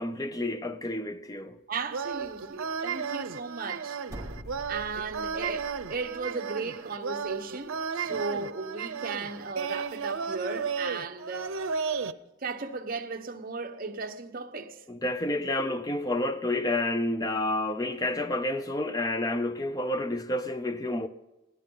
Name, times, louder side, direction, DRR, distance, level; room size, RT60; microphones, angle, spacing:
voice 1, 0.0-1.6 8.1-8.2 14.9-21.1, left 1 dB, 20° left, 0.5 m, -29 dB
voice 2, 1.7-4.0 4.7-11.5 12.4-14.8, right 4 dB, 45° right, 1.1 m, -36 dB
sound 1, 1.9-12.1, right 5 dB, 90° right, 0.7 m, -34 dB
sound 2, 4.1-6.2, equal, 15° right, 1.4 m, -44 dB
20.5 x 16.0 x 3.9 m
head